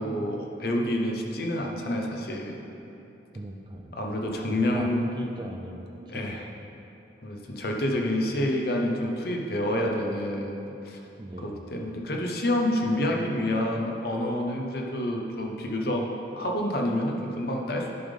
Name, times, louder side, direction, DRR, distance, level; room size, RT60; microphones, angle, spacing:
voice 1, 0.0-2.6 3.9-5.0 6.1-6.5 7.2-11.0 11.4-16.1 16.3-17.9, left 1 dB, 55° left, 0 dB, 0.8 m, -28 dB
voice 2, 3.3-4.0 4.3-6.3 11.2-11.7, right 1 dB, 25° right, 3 dB, 0.3 m, -39 dB
10.5 x 3.6 x 5.3 m, 2.9 s
head